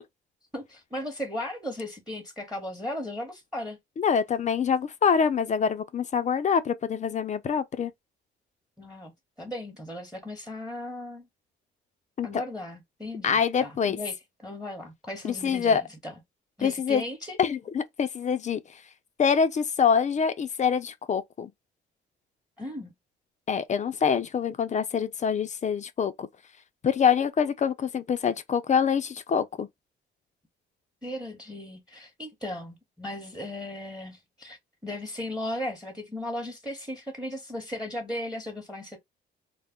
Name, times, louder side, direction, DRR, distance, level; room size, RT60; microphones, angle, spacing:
voice 1, 0.5-3.8 8.8-9.1 9.4-11.3 12.2-16.1 16.6-17.4 22.6-22.9 31.0-34.6 34.8-39.0, left 1 dB, 5° right, 0.9 m, -36 dB
voice 2, 4.0-7.9 12.2-12.4 13.2-14.0 15.2-15.8 16.6-17.0 17.4-18.6 19.2-21.5 23.5-26.3 26.8-29.7, left 7 dB, 35° left, 0.4 m, -25 dB
2.3 x 2.0 x 3.5 m
cardioid pair, 90°, 20 cm